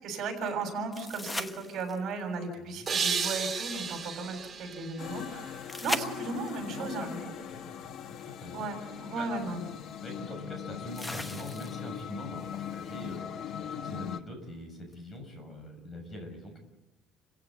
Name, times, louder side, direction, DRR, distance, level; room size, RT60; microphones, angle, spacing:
voice 1, 0.0-5.5 5.8-7.1 8.5-9.6, right 3 dB, 50° right, 4 dB, 7.4 m, -35 dB
sound 1, 0.9-2.2 5.7-6.7 8.6-8.7 11.0-12.0 14.9-15.0, left 1 dB, 10° left, 1.1 m, -37 dB
voice 2, 2.6-2.9 6.7-9.3 10.0-16.6, left 1 dB, 25° left, 5 dB, 6.8 m, -43 dB
sound 2, 2.9-6.0, right 6 dB, 25° right, 3.2 m, -34 dB
sound 3, 5.0-14.2, left 9 dB, 55° left, 1.2 m, -41 dB
30.0 x 16.0 x 8.8 m, 1.1 s
cardioid pair, 160°, 0 cm